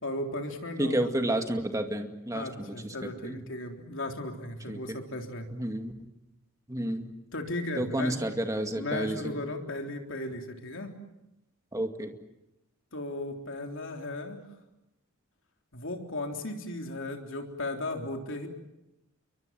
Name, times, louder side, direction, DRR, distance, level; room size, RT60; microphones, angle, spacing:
voice 1, 0.0-1.0 2.3-5.5 7.3-8.2 8.7-10.9 12.9-14.4 15.7-18.5, left 2 dB, 60° left, 3 dB, 3.7 m, -36 dB
voice 2, 0.8-3.4 4.7-5.0 5.5-5.9 6.7-7.1 7.8-9.4 11.7-12.1, right 1 dB, 15° right, 5 dB, 2.1 m, -31 dB
29.0 x 23.5 x 7.6 m, 0.90 s
head